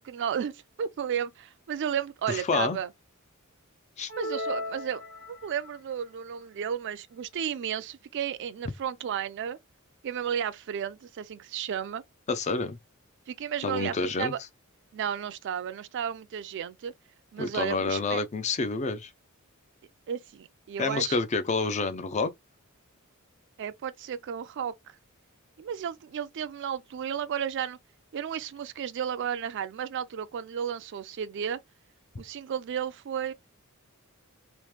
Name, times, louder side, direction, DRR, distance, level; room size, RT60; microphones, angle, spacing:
voice 1, 0.0-2.9 4.2-5.0 5.3-9.6 10.0-12.0 13.3-14.4 14.9-16.9 17.3-18.2 20.1-21.2 23.6-24.7 25.6-27.8 28.1-31.6 32.2-33.3, right 8 dB, 55° right, 0.3 m, -33 dB
voice 2, 2.3-2.8 4.0-4.1 12.3-12.8 13.6-14.3 17.4-19.1 20.8-22.3, left 4 dB, 30° left, 0.4 m, -28 dB
sound 1, 4.1-5.8, left 1 dB, 60° left, 1.1 m, -36 dB
3.0 x 2.1 x 3.2 m
head